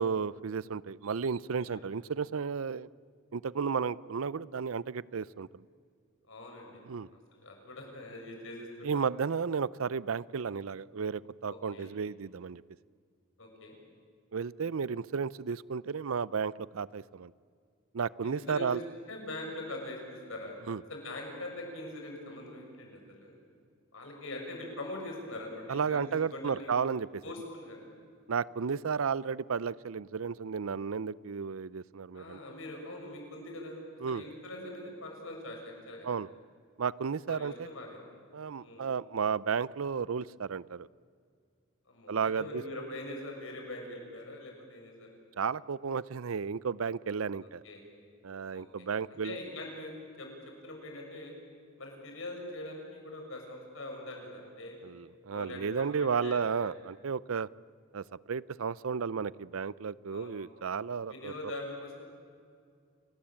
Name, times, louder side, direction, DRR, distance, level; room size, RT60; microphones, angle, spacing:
voice 1, 0.0-2.9 3.3-5.5 6.9-7.1 8.8-12.6 14.3-17.3 17.9-18.8 20.7-20.8 25.7-27.2 28.3-32.4 34.0-34.2 36.0-36.3 36.8-37.5 38.3-40.9 42.1-42.6 45.4-47.6 48.2-49.4 54.8-57.5 57.9-61.3, right 6 dB, 90° right, 21 dB, 0.5 m, -33 dB
voice 2, 6.3-6.8 7.3-9.0 11.5-11.9 13.4-13.8 18.2-18.8 19.1-20.5 20.9-23.3 23.9-26.7 27.2-27.8 32.1-36.1 37.3-38.0 38.6-38.8 41.9-45.1 47.6-47.8 48.5-48.6 49.1-49.9 50.2-50.3 50.6-51.3 51.8-54.8 55.3-56.7 60.1-60.4 61.1-62.1, left 1 dB, 70° left, 1 dB, 6.8 m, -43 dB
29.5 x 19.0 x 8.9 m, 2.2 s
head